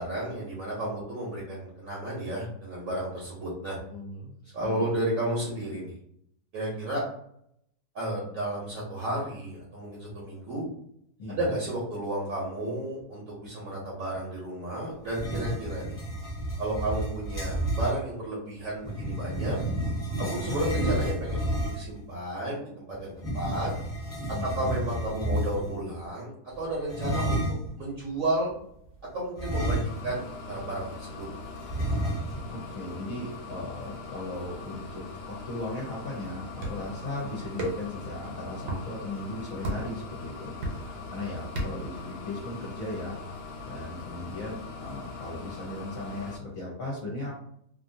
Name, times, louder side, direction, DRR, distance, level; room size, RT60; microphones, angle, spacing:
voice 1, 0.0-3.8 4.5-5.9 6.5-7.0 7.9-10.6 11.3-16.0 16.6-19.6 20.2-23.7 24.4-27.4 27.8-28.5 29.1-31.5, right 1 dB, 55° right, -4 dB, 1.1 m, -32 dB
voice 2, 3.9-4.9 11.2-11.5 20.1-20.6 24.3-24.7 32.5-43.2 43.6-47.3, left 1 dB, 60° left, -5 dB, 1.1 m, -37 dB
sound 1, 15.0-18.0 18.8-22.0 23.2-25.8 26.9-27.7 29.4-30.3 30.6-30.7 31.7-32.5, right 1 dB, 25° left, 1.0 m, -30 dB
sound 2, 29.8-46.4, left 4 dB, 75° left, 1.1 m, -42 dB
sound 3, 36.6-36.9 37.6-38.0 38.6-38.8 39.6-40.0 40.6-41.0 41.6-41.9, equal, 75° right, 1.3 m, -32 dB
2.9 x 2.5 x 2.6 m, 0.71 s
omnidirectional pair, 1.8 m